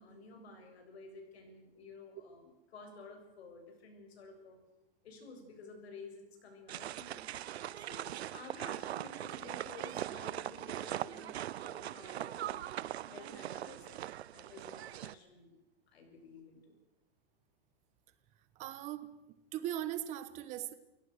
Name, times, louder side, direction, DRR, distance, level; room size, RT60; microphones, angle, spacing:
voice 1, 0.0-4.6 5.0-7.5 7.8-12.7 13.0-13.9 14.3-15.6 15.9-16.8, left 3 dB, 75° left, 7.6 m, -53 dB
sound 1, 6.7-15.1, right 12 dB, 85° right, 0.8 m, -41 dB
voice 2, 18.5-19.1 19.5-20.7, right 12 dB, 20° right, 1.2 m, -39 dB
29.0 x 17.5 x 6.6 m
supercardioid pair, 165°, 31 cm